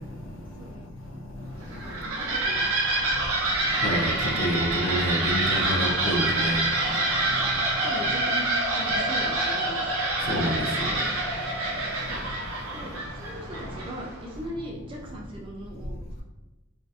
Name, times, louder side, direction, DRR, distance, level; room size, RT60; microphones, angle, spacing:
sound 1, 1.6-14.2, right 2 dB, 80° right, 0.6 m, -27 dB
voice 1, 1.7-3.1 7.3-7.4 7.8-10.0 10.9-11.1 12.0-12.3 12.7-16.2, right 1 dB, 25° right, -2 dB, 0.3 m, -39 dB
voice 2, 3.8-6.6 10.3-10.9, equal, 60° left, 0 dB, 0.4 m, -27 dB
2.7 x 2.3 x 2.3 m, 1.1 s
head